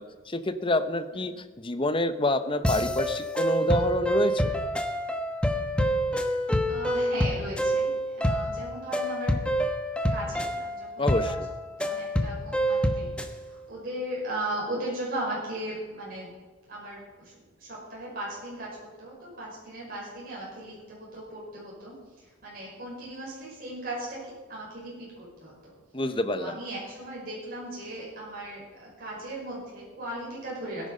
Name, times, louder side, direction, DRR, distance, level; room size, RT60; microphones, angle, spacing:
voice 1, 0.0-4.4 11.0-11.5 25.9-26.6, left 1 dB, 25° left, 10 dB, 0.8 m, -27 dB
sound 1, 2.6-13.3, equal, 5° left, 1.0 m, -27 dB
voice 2, 6.7-9.4 10.1-11.3 11.8-13.1 13.5-16.3 16.7-25.7 26.3-30.9, right 1 dB, 45° right, -6 dB, 5.7 m, -37 dB
17.0 x 10.5 x 5.5 m, 1.3 s
head